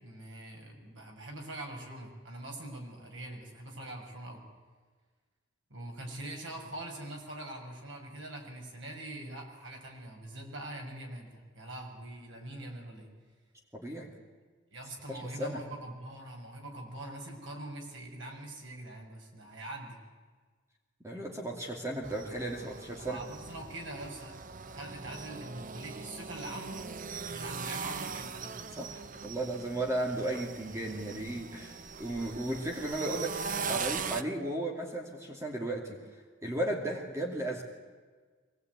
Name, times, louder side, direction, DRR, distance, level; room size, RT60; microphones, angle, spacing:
voice 1, 0.0-4.4 5.7-13.1 14.7-20.0 23.0-24.3 24.7-26.8 27.3-28.5, right 1 dB, 60° right, 1 dB, 6.5 m, -43 dB
voice 2, 13.7-14.1 15.1-15.6 21.0-23.2 28.8-31.7 32.0-33.4 33.7-37.6, right 1 dB, 15° right, 1 dB, 2.6 m, -35 dB
sound 1, 22.0-34.2, right 5 dB, 40° right, 0.8 m, -40 dB
24.0 x 19.5 x 9.6 m, 1.5 s
head